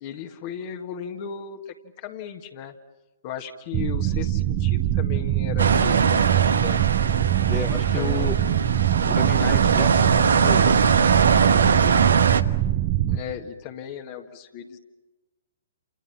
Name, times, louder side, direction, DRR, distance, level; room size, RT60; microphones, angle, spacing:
voice 1, 0.0-2.7 3.2-6.9 8.0-8.3 13.1-14.8, left 8 dB, 40° left, 4 dB, 1.8 m, -36 dB
sound 1, 3.7-13.2, right 13 dB, 30° right, 1.2 m, -23 dB
sound 2, 5.6-12.4, right 5 dB, 70° right, 1.1 m, -21 dB
voice 2, 7.5-8.4 9.0-10.8 11.4-12.1, left 6 dB, 15° left, 8 dB, 1.2 m, -34 dB
29.5 x 29.0 x 5.9 m, 1.1 s
figure-of-eight pair, 120°, 0 cm